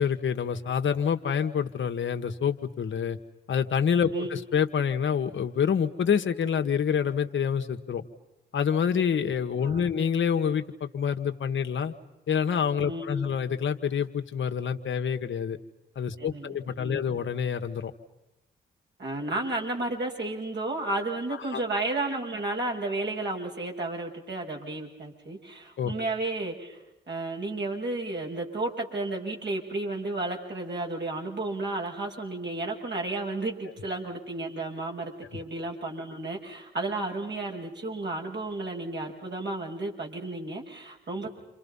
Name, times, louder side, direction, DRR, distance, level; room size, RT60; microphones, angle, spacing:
voice 1, 0.0-3.2 3.5-8.0 8.5-11.9 12.3-15.6 15.9-17.9 21.5-21.6 25.8-25.9, left 7 dB, 70° left, 5 dB, 1.7 m, -27 dB
voice 2, 12.9-13.3 16.2-17.2 19.0-26.8 27.1-41.3, right 2 dB, 60° right, -1 dB, 7.0 m, -32 dB
30.0 x 26.5 x 5.6 m, 0.96 s
supercardioid pair, 50°, 21 cm